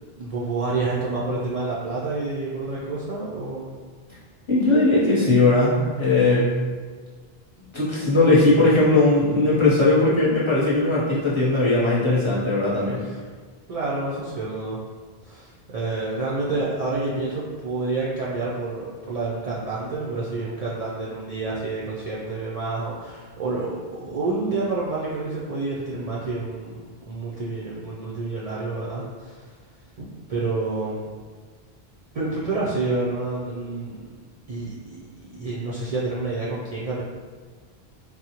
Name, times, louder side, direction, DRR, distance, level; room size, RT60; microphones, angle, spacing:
voice 1, 0.2-3.7 13.0-13.2 13.7-14.8 15.2-26.8 27.1-29.4 30.0-31.1 32.1-34.0 34.5-35.0 35.3-37.0, right 3 dB, 55° right, -6 dB, 0.4 m, -28 dB
voice 2, 4.5-6.6 7.7-13.0, left 2 dB, 30° left, -9 dB, 0.8 m, -19 dB
3.7 x 2.0 x 2.8 m, 1.5 s
omnidirectional pair, 1.0 m